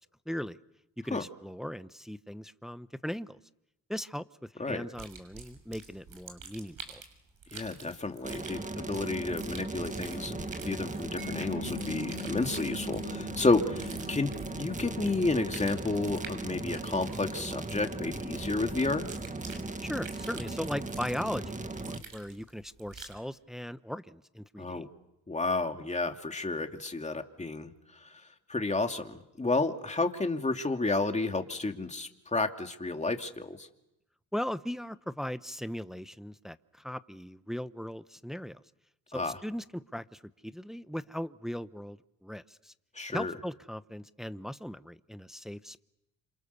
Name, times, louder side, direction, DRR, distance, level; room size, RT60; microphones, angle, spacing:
voice 1, 0.3-0.6 1.0-3.4 3.9-4.2 4.5-7.0 19.8-24.8 34.3-38.6 39.1-42.7 43.1-45.8, equal, ahead, 13 dB, 0.9 m, -38 dB
sound 1, 4.9-23.2, right 5 dB, 65° right, 6.7 m, -48 dB
voice 2, 7.5-19.1 24.6-24.9 25.3-28.2 28.5-33.7 39.1-39.4 42.9-43.3, left 3 dB, 20° left, 5 dB, 2.6 m, -31 dB
sound 2, 8.2-22.0, right 2 dB, 20° right, 1.9 m, -38 dB
Mallet percussion, 11.2-17.9, left 12 dB, 50° left, 5.5 m, -46 dB
27.5 x 27.0 x 6.9 m, 0.86 s
supercardioid pair, 70°, 36 cm